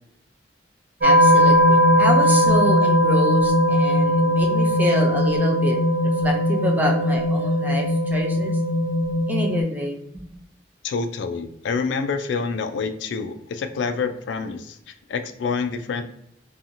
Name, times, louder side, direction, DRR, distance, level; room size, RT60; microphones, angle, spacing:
voice 1, 1.0-5.8 6.0-8.5 9.3-10.2, equal, 10° right, 1 dB, 0.4 m, -27 dB
sound 1, 1.0-9.6, equal, 65° right, 0.9 m, -18 dB
voice 2, 10.8-14.8 15.1-16.0, left 5 dB, 85° left, 8 dB, 0.3 m, -27 dB
2.8 x 2.3 x 2.5 m, 0.76 s
head